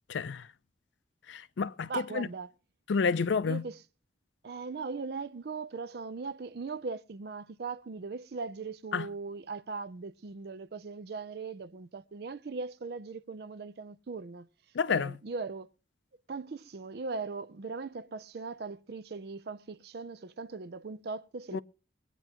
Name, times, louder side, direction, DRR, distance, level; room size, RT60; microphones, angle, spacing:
voice 1, 0.1-0.5 1.3-2.3 2.9-3.7 8.9-9.1 14.7-15.2 21.5-21.6, left 5 dB, 85° left, 0.5 m, -30 dB
voice 2, 1.9-2.5 3.5-3.8 4.4-14.5 14.9-15.7 16.3-21.6, right 4 dB, 60° right, 0.5 m, -39 dB
22.5 x 9.1 x 2.9 m
head